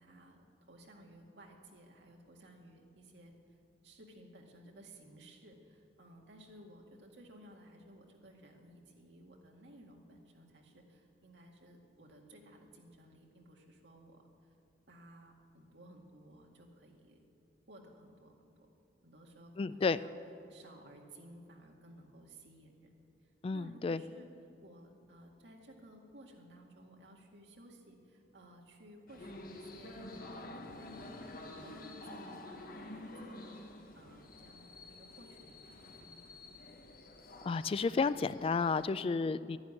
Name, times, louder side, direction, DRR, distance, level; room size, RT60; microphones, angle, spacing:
voice 1, 0.0-3.3 3.8-14.3 14.9-17.2 17.7-18.7 19.0-20.1 20.5-22.9 23.5-24.3 24.6-31.2 31.6-33.6 33.9-36.7 39.2-39.4, right 1 dB, 75° right, 1 dB, 2.0 m, -57 dB
voice 2, 19.6-20.0 23.4-24.0 37.4-39.6, left 4 dB, 30° left, 15 dB, 0.3 m, -32 dB
sound 1, 29.1-38.9, left 1 dB, 55° left, 1.3 m, -49 dB
11.5 x 11.0 x 9.7 m, 2.5 s
head